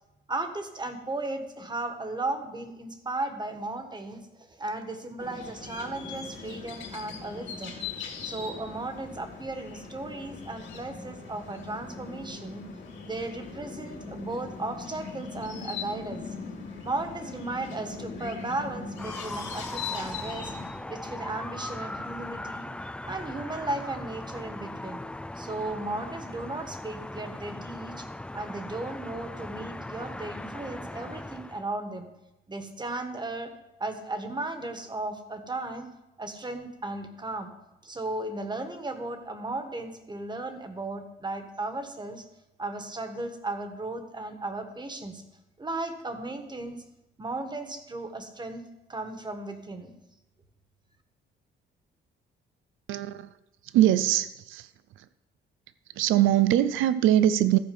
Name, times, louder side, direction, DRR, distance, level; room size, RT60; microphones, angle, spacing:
voice 1, 0.3-12.6 13.1-16.3 16.8-20.6 20.9-22.7 23.1-25.0 25.3-28.1 28.3-32.1 32.5-33.5 33.8-35.9 36.2-37.5 37.8-42.2 42.6-45.2 45.6-46.8 47.2-49.9, right 2 dB, 20° right, 7 dB, 1.5 m, -35 dB
sound 1, 5.2-20.7, left 5 dB, 65° left, 2.4 m, -40 dB
sound 2, 19.0-31.7, left 1 dB, 5° left, 0.3 m, -39 dB
voice 2, 52.9-53.3 53.6-54.7 55.0-55.1 56.0-57.6, right 12 dB, 85° right, 14 dB, 0.5 m, -22 dB
14.0 x 4.8 x 6.9 m, 0.95 s
cardioid pair, 90°, 20 cm